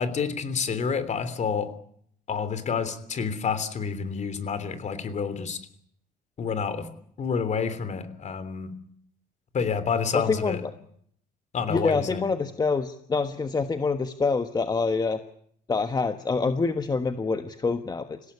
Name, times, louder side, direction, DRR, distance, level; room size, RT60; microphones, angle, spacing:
voice 1, 0.0-1.7 2.3-5.6 6.4-6.9 7.2-8.7 9.5-10.6 11.5-12.3, left 6 dB, 45° left, 13 dB, 3.2 m, -28 dB
voice 2, 10.1-10.7 11.7-15.2 15.7-18.3, left 4 dB, 25° left, 9 dB, 1.3 m, -26 dB
26.5 x 17.0 x 9.9 m, 0.67 s
cardioid pair, 110°, 17 cm